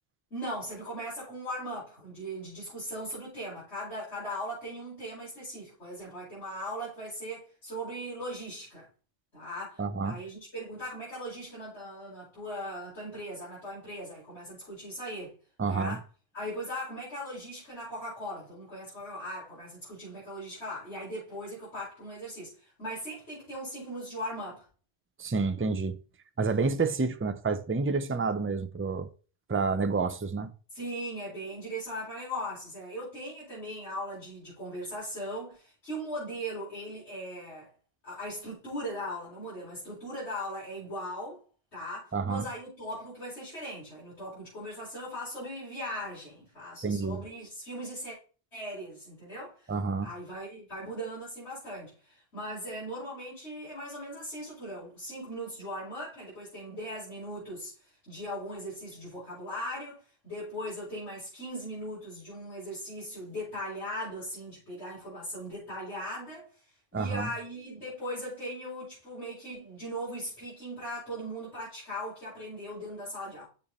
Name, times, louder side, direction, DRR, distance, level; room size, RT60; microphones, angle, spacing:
voice 1, 0.3-8.9 9.3-15.3 15.6-16.0 16.3-24.7 30.7-37.7 38.0-41.4 41.7-48.2 48.5-49.7 50.0-57.7 58.1-66.5 66.9-73.5, equal, 90° left, 5.9 m, -39 dB
voice 2, 9.8-10.2 15.6-16.0 25.2-26.0 26.4-29.1 29.5-30.5 42.1-42.4 46.8-47.2 49.7-50.1 66.9-67.3, right 4 dB, 15° right, 0.4 m, -29 dB
7.3 x 7.1 x 4.2 m
omnidirectional pair, 1.1 m